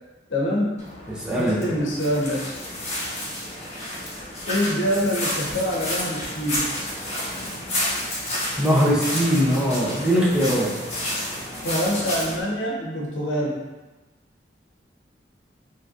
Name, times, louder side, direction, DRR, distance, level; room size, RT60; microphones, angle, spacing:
voice 1, 0.3-0.8 1.4-2.4 4.5-6.7 11.6-13.6, equal, 90° left, -3 dB, 0.7 m, -25 dB
sound 1, 0.8-12.4, left 1 dB, 35° left, 0.9 m, -30 dB
voice 2, 1.1-1.6 8.6-10.7, equal, 5° right, -6 dB, 0.4 m, -21 dB
3.1 x 2.7 x 2.4 m, 1.2 s
head